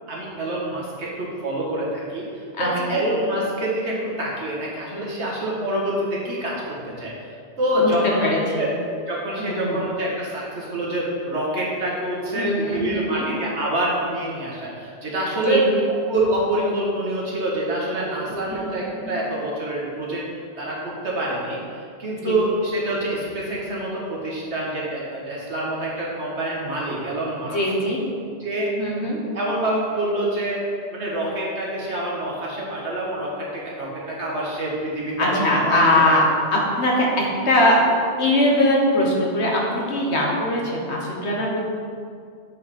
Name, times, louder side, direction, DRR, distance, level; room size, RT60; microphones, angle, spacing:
voice 1, 0.1-7.1 7.6-15.7 16.1-20.2 20.6-27.6 28.4-28.7 29.3-30.6 30.9-36.1, right 1 dB, 70° right, -4 dB, 1.9 m, -26 dB
voice 2, 2.6-3.0 7.7-7.9 8.2-8.7 9.4-9.8 12.4-13.3 15.4-15.6 18.3-18.4 19.0-19.1 22.2-22.3 27.5-28.0 28.8-29.2 35.2-36.3 36.5-37.8 38.2-41.6, left 1 dB, 65° left, -2 dB, 1.5 m, -21 dB
7.6 x 5.7 x 4.2 m, 2.2 s
omnidirectional pair, 1.2 m